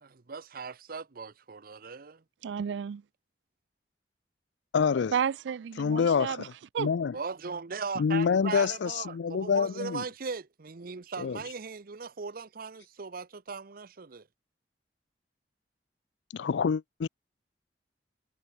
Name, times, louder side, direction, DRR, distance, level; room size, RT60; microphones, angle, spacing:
voice 1, 0.0-2.2 7.1-14.2, right 5 dB, 55° right, 0.7 m, -38 dB
voice 2, 2.4-3.0 5.1-6.5 6.7-6.9, right 7 dB, 85° right, 0.4 m, -31 dB
voice 3, 4.7-5.1 5.8-6.5 6.8-7.1 8.0-10.0 11.2-11.4 16.3-17.1, left 6 dB, 85° left, 0.4 m, -27 dB
head